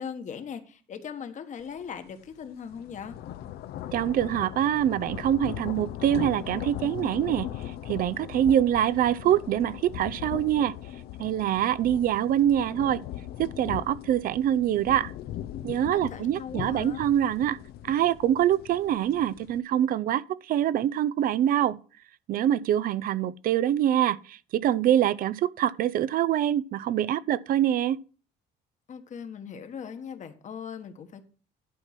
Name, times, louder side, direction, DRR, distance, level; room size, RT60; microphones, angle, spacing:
voice 1, 0.0-3.2 16.1-17.0 28.9-31.3, left 7 dB, 45° left, 1.3 m, -39 dB
sound 1, 1.8-2.0 2.3-19.6, left 12 dB, 70° left, 0.6 m, -39 dB
voice 2, 3.9-7.5 7.9-10.8 11.2-13.0 13.4-15.1 15.6-17.6 17.8-21.8 22.3-28.0, right 11 dB, 55° right, 0.5 m, -25 dB
11.0 x 4.5 x 5.8 m
cardioid pair, 110°, 17 cm